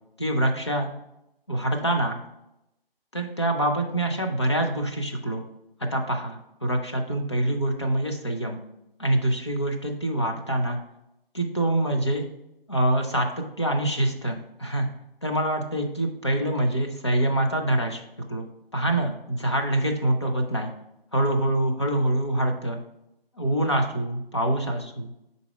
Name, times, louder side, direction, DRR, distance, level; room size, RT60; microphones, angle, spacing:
voice 1, 0.2-0.9 1.5-2.2 3.1-5.4 5.9-8.6 9.0-10.8 11.3-12.3 12.7-14.9 15.2-18.0 18.3-18.5 18.7-20.7 21.1-22.8 23.4-25.3, right 1 dB, 30° left, 3 dB, 0.5 m, -25 dB
5.4 x 4.0 x 4.7 m, 0.87 s
hypercardioid pair, 170°, 30 cm